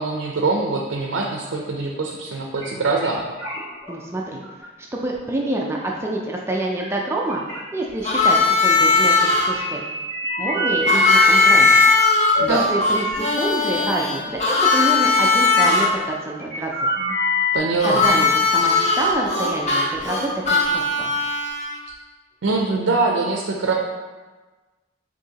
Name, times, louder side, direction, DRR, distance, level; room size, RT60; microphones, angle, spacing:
voice 1, 0.0-3.3 12.4-12.6 17.5-18.2 22.4-23.7, right 3 dB, 85° right, 0 dB, 0.5 m, -23 dB
sound 1, 2.6-2.7 3.0-3.1 3.4-3.9 4.4-4.6 5.1-5.2 6.8-6.9 7.3-7.6 8.0-8.1 9.5-12.4 12.8-13.2 13.9-14.0 14.2-14.4 15.5-15.9 16.4-17.6, left 1 dB, 55° left, 1.4 m, -22 dB
voice 2, 3.9-7.4 7.7-9.8 10.4-11.8 12.5-16.9 17.8-21.1, right 2 dB, 15° right, -1 dB, 0.3 m, -27 dB
Harmonica, 8.0-9.5 10.9-15.9 17.8-21.7, left 4 dB, 35° left, 0.7 m, -19 dB
6.3 x 2.7 x 2.8 m, 1.3 s
head